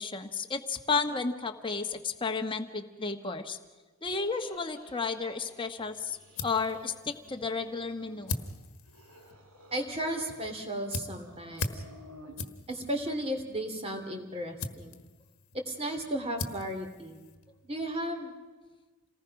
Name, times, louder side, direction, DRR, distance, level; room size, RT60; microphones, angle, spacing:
voice 1, 0.0-3.6 4.0-8.3, left 4 dB, 20° left, 5 dB, 1.3 m, -32 dB
sound 1, 4.1-5.7 6.0-6.9 7.1-8.5 8.9-10.5 10.8-12.4, equal, 80° right, 4.4 m, -54 dB
sound 2, 5.8-17.9, left 3 dB, 70° left, 1.5 m, -42 dB
voice 2, 9.7-11.8 12.7-15.0 15.5-17.2 17.6-18.3, right 1 dB, 25° right, 5 dB, 2.8 m, -34 dB
28.0 x 19.0 x 5.9 m, 1.3 s
head